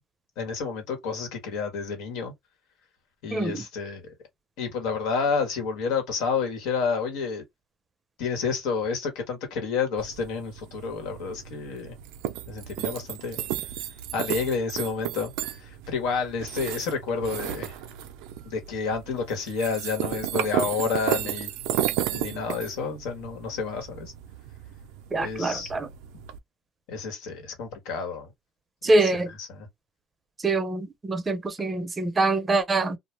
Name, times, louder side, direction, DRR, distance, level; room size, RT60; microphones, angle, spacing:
voice 1, 0.4-2.3 3.2-4.1 4.6-7.4 8.2-11.9 12.5-13.4 14.1-15.3 15.6-17.7 18.4-21.5 22.1-24.1 25.2-25.7 26.9-28.3 28.8-29.7, left 5 dB, 80° left, 1.2 m, -30 dB
voice 2, 3.3-3.6 25.1-25.9 28.8-29.3 30.4-33.0, right 2 dB, 20° right, 0.6 m, -24 dB
sound 1, 10.0-26.4, right 12 dB, 85° right, 0.4 m, -34 dB
2.4 x 2.1 x 3.1 m
cardioid pair, 115°, 0 cm